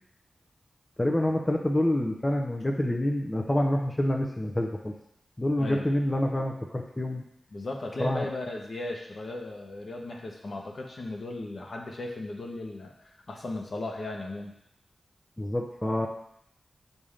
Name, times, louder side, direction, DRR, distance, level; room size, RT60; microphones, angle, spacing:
voice 1, 1.0-4.9 5.4-7.2 8.0-8.3 15.4-16.1, left 1 dB, 20° left, 1 dB, 0.6 m, -27 dB
voice 2, 7.5-14.5, left 2 dB, 60° left, 1 dB, 1.0 m, -36 dB
7.3 x 2.7 x 5.0 m, 0.74 s
cardioid pair, 65°, 0 cm